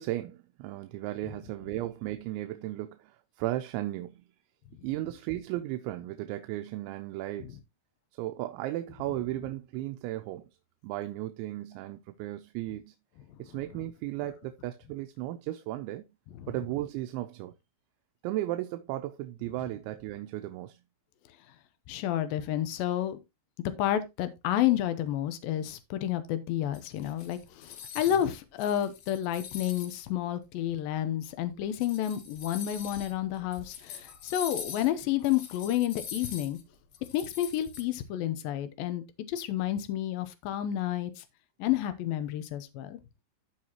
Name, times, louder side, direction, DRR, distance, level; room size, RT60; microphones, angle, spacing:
voice 1, 0.0-4.2 4.8-7.6 8.2-10.4 10.8-12.9 13.4-16.0 16.5-17.5 18.2-20.8, right 15 dB, 85° right, 3.0 m, -35 dB
voice 2, 21.9-23.2 23.8-36.6 37.1-41.2 41.6-43.0, left 12 dB, 80° left, 2.1 m, -30 dB
sound 1, 26.7-28.3 28.6-30.1 30.7-30.8 31.6-37.8, left 8 dB, 60° left, 2.8 m, -43 dB
14.5 x 4.8 x 2.9 m
omnidirectional pair, 5.2 m